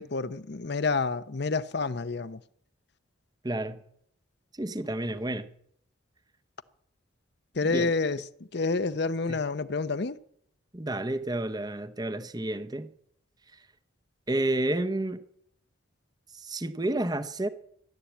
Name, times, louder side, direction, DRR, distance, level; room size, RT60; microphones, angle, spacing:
voice 1, 0.0-2.4 7.5-8.2 8.5-10.2, left 3 dB, 55° left, 0.7 m, -28 dB
voice 2, 3.4-3.8 4.5-5.5 7.7-7.9 9.3-9.4 10.7-12.9 14.3-15.2 16.3-17.5, right 1 dB, 20° right, 0.8 m, -30 dB
14.5 x 11.5 x 8.4 m
head